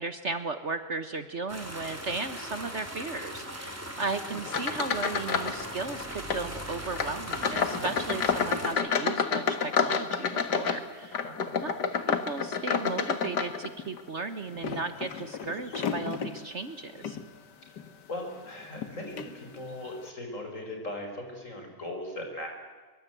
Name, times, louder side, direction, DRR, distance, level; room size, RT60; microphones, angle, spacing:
voice 1, 0.0-11.2 11.6-17.2, right 3 dB, 45° right, 10 dB, 1.4 m, -35 dB
sound 1, 1.5-8.7, right 1 dB, 10° right, 3.5 m, -39 dB
sound 2, 4.5-5.6 5.9-6.5 6.9-14.0 14.5-16.4 17.0-17.2 17.8-17.9 18.8-18.9 19.2-19.3, left 6 dB, 90° left, 2.2 m, -29 dB
voice 2, 11.2-11.6 18.1-22.5, left 1 dB, 50° left, 3 dB, 6.1 m, -39 dB
23.5 x 23.5 x 9.2 m, 1.4 s
omnidirectional pair, 1.7 m